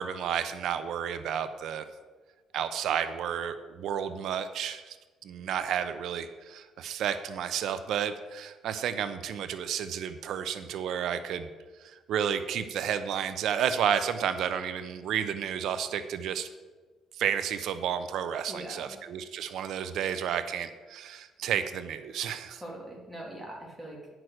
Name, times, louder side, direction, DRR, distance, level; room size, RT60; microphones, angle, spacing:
voice 1, 0.0-1.8 2.5-5.0 5.2-11.5 11.8-16.5 17.2-22.6, right 8 dB, 70° right, 11 dB, 0.6 m, -31 dB
voice 2, 18.5-19.0 22.5-24.1, right 1 dB, 5° right, -3 dB, 2.5 m, -42 dB
9.3 x 6.1 x 6.4 m, 1.3 s
cardioid pair, 135°, 0 cm